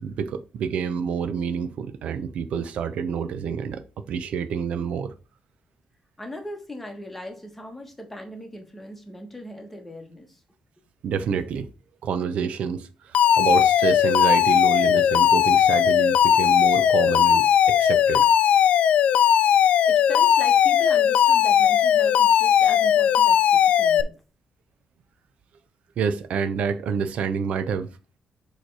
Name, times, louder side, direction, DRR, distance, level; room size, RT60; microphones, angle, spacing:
voice 1, 0.0-5.1 11.0-11.7 12.0-18.3 26.0-27.9, right 7 dB, 90° right, 0.6 m, -28 dB
voice 2, 6.2-10.4 19.6-24.1, left 1 dB, 10° left, 1.2 m, -38 dB
Alarm, 13.1-24.0, left 9 dB, 85° left, 0.4 m, -18 dB
6.6 x 3.2 x 4.6 m
wide cardioid pair, 170°, 2 cm